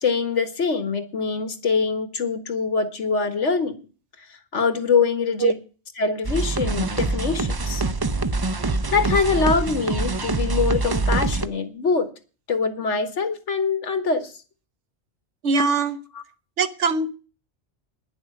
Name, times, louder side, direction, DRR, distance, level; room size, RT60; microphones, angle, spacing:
voice 1, 0.0-3.8 4.5-5.5 6.0-7.8 8.9-12.1 12.5-14.3, left 5 dB, 90° left, 9 dB, 1.8 m, -23 dB
sound 1, 6.2-11.5, right 3 dB, 30° right, 0.5 m, -24 dB
voice 2, 15.4-16.0 16.6-17.1, right 4 dB, 75° right, 11 dB, 1.3 m, -22 dB
10.5 x 7.1 x 9.4 m, 0.36 s
omnidirectional pair, 1.2 m